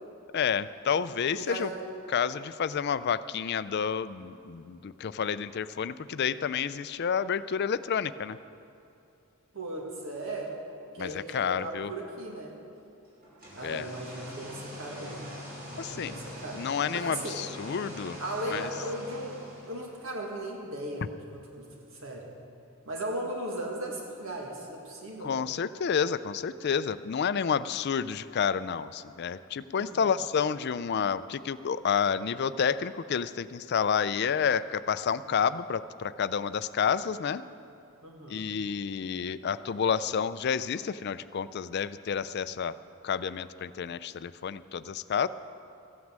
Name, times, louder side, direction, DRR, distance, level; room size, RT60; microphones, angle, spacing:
voice 1, 0.3-1.7 2.1-8.4 11.0-11.9 13.6-13.9 15.8-16.2 16.5-18.2 18.5-18.7 25.2-37.4 38.3-42.8 43.0-45.3, left 7 dB, 50° left, 15 dB, 0.4 m, -30 dB
voice 2, 1.3-1.8 9.5-10.6 10.9-12.5 13.6-15.3 15.7-16.7 16.9-17.4 18.2-21.1 21.3-22.3 22.9-25.4 29.7-30.1 38.0-38.5, right 1 dB, 65° right, 0 dB, 1.8 m, -37 dB
sound 1, 13.2-20.0, left 1 dB, 40° right, 3.7 m, -43 dB
15.0 x 9.5 x 7.4 m, 2.6 s
head